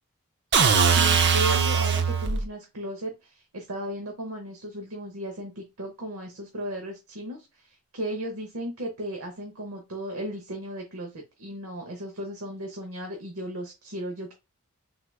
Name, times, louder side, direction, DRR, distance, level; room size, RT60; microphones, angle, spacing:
sound 1, 0.5-2.5, right 6 dB, 50° right, 0.5 m, -21 dB
voice 1, 0.8-14.3, right 1 dB, 70° right, 2 dB, 0.9 m, -36 dB
4.6 x 3.8 x 2.3 m, 0.25 s
head